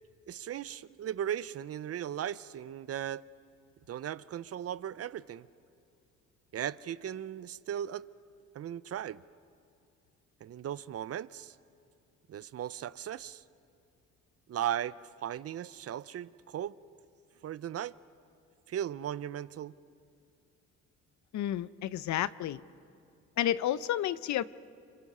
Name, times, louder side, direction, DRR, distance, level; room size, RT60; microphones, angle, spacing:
voice 1, 0.3-3.2 3.9-5.5 6.5-8.0 8.5-9.2 10.4-11.6 12.3-13.4 14.5-16.8 17.4-17.9 18.7-19.7, right 10 dB, 50° right, 0.6 m, -37 dB
voice 2, 21.3-22.6 23.4-24.4, left 12 dB, 70° left, 0.7 m, -31 dB
29.5 x 26.0 x 5.5 m
cardioid pair, 90°, 30 cm